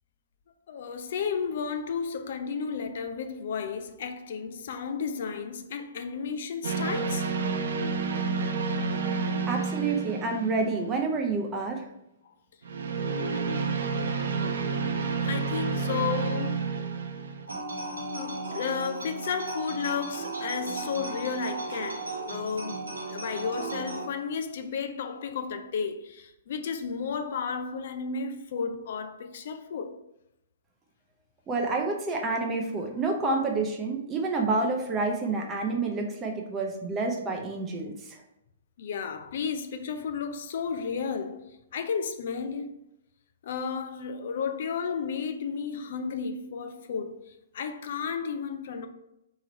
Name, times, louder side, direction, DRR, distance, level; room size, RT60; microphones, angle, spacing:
voice 1, 0.7-7.3 12.2-12.3 13.1-13.7 15.2-16.7 18.1-30.0 38.8-42.7 43.4-48.9, left 6 dB, 55° left, 0.4 m, -33 dB
sound 1, 6.6-11.1 12.6-17.5, right 4 dB, 65° right, 0.5 m, -30 dB
voice 2, 9.5-11.9 31.5-37.9, right 3 dB, 20° right, 0.6 m, -28 dB
sound 2, 17.5-24.1, right 2 dB, 85° right, 0.9 m, -36 dB
3.7 x 3.0 x 4.2 m
figure-of-eight pair, 120°, 0 cm